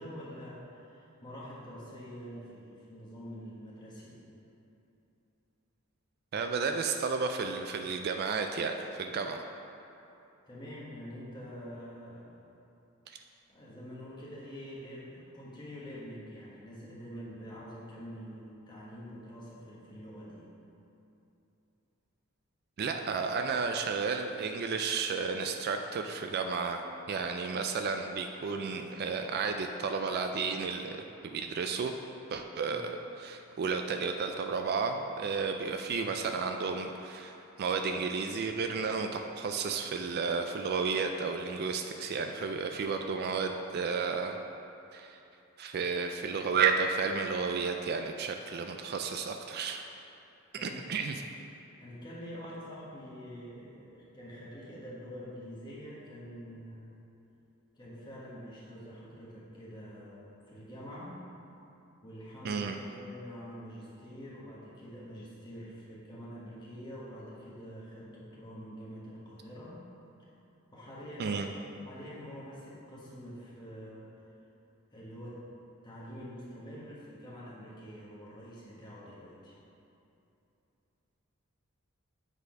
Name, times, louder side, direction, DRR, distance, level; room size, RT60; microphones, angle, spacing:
voice 1, 0.0-4.2 10.5-12.3 13.5-20.4 32.6-32.8 50.5-50.8 51.8-57.0 57.7-61.2 62.0-69.8 70.7-71.4 71.8-74.1 74.9-75.4 75.8-79.6, equal, 20° left, -6 dB, 1.5 m, -46 dB
voice 2, 6.3-8.7 9.0-9.4 13.1-13.2 22.8-31.9 32.3-44.4 44.9-45.2 45.6-49.8 50.6-51.2 62.4-62.8 71.2-71.5, right 5 dB, 45° right, 5 dB, 0.3 m, -32 dB
8.0 x 4.2 x 5.2 m, 2.8 s
head